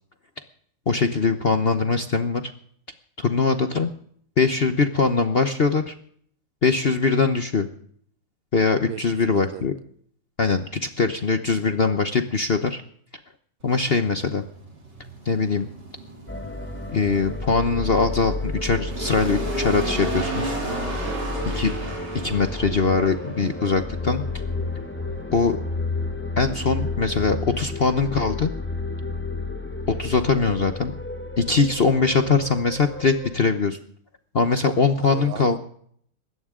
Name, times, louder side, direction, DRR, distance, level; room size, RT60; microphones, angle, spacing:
voice 1, 0.9-2.4 3.2-3.9 4.4-5.9 6.6-7.7 8.5-9.7 10.4-12.8 13.6-14.4 15.2-15.7 16.9-20.6 21.5-21.7 22.2-24.2 25.3-25.6 26.4-28.5 30.0-30.9 31.4-33.8 34.3-35.6, left 4 dB, 45° left, 0.8 m, -22 dB
voice 2, 8.9-9.7 21.0-21.5 35.0-35.6, right 11 dB, 90° right, 1.6 m, -37 dB
sound 1, 13.6-28.1, right 2 dB, 60° right, 4.0 m, -35 dB
sound 2, 16.3-33.4, left 2 dB, 10° left, 0.5 m, -31 dB
21.0 x 16.5 x 3.7 m
omnidirectional pair, 2.1 m